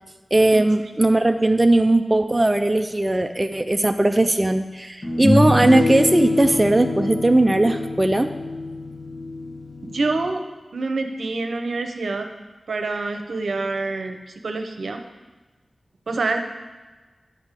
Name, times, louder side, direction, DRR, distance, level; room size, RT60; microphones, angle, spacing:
voice 1, 0.3-8.3, right 2 dB, 20° right, 6 dB, 0.4 m, -18 dB
sound 1, 3.9-4.0 5.0-10.3, left 1 dB, 55° left, 1.8 m, -24 dB
voice 2, 9.9-10.4 10.7-12.3 12.7-15.0 16.1-16.4, right 3 dB, 80° right, 6 dB, 0.7 m, -26 dB
10.5 x 3.5 x 7.3 m, 1.3 s
wide cardioid pair, 95°, 0 cm